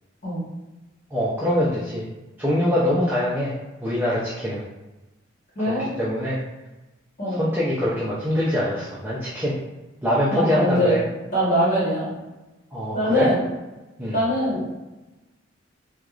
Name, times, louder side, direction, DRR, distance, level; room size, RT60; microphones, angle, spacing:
voice 1, 1.1-2.1 2.4-3.5 3.8-4.6 6.0-6.4 7.3-9.6 10.0-11.0 12.7-13.3 14.0-14.2, equal, 10° right, -7 dB, 0.5 m, -23 dB
voice 2, 5.5-5.9 7.2-7.4 10.3-11.0 11.3-12.1 12.9-13.4 14.1-14.7, equal, 40° left, -9 dB, 1.2 m, -22 dB
4.5 x 2.4 x 2.4 m, 1.1 s
head